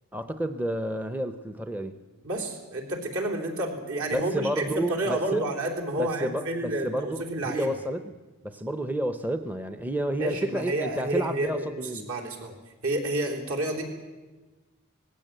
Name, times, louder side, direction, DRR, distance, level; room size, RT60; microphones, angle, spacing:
voice 1, 0.1-2.0 4.1-5.4 6.0-8.2 8.4-12.1, right 1 dB, 10° right, 9 dB, 0.6 m, -30 dB
voice 2, 2.2-7.7 10.2-11.7 11.9-12.5 12.8-13.8, right 1 dB, 70° right, 1 dB, 3.8 m, -30 dB
19.5 x 15.5 x 8.9 m, 1.3 s
head